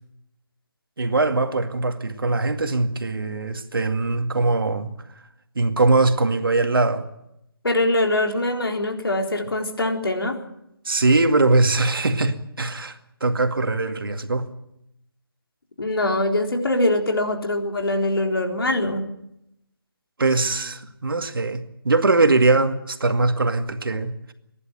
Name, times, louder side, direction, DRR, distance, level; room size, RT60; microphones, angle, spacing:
voice 1, 1.0-4.9 5.6-7.0 10.8-14.5 20.2-24.3, right 3 dB, 65° right, 2.2 m, -21 dB
voice 2, 7.6-10.4 15.8-19.0, left 1 dB, 75° left, 3.9 m, -23 dB
28.0 x 11.5 x 9.1 m
figure-of-eight pair, 170°, 12 cm